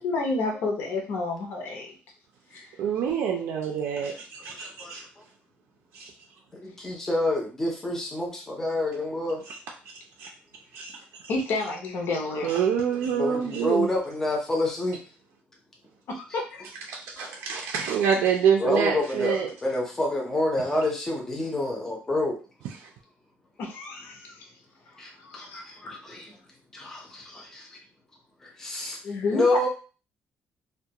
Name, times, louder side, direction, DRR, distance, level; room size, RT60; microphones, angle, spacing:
voice 1, 0.0-1.9 2.5-2.7 11.3-12.6 16.1-16.6 23.6-24.5 24.9-26.0 29.0-29.7, left 3 dB, 55° left, 0.6 m, -30 dB
voice 2, 2.8-5.0 5.9-6.1 10.2-10.3 10.7-11.0 12.4-13.9 16.9-19.5, right 7 dB, 90° right, 0.4 m, -26 dB
voice 3, 4.5-5.2 6.5-9.4 13.2-15.0 17.2-17.4 18.6-22.4 25.0-26.3 26.7-27.8 28.4-29.0 29.3-29.7, left 1 dB, 10° left, 0.5 m, -28 dB
2.3 x 2.2 x 2.7 m
cardioid pair, 180°, 4 cm